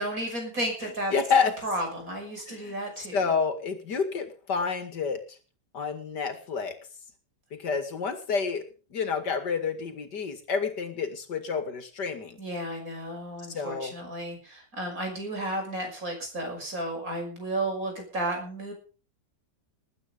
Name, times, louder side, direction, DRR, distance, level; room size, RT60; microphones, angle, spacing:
voice 1, 0.0-1.1 1.6-3.2 12.4-18.7, right 1 dB, 55° right, 2 dB, 6.4 m, -33 dB
voice 2, 0.8-1.5 2.5-2.8 3.1-5.4 5.7-6.8 7.5-8.6 8.9-12.4 13.5-13.9, left 5 dB, 85° left, 8 dB, 2.8 m, -29 dB
20.0 x 9.1 x 5.3 m, 0.36 s
omnidirectional pair, 1.8 m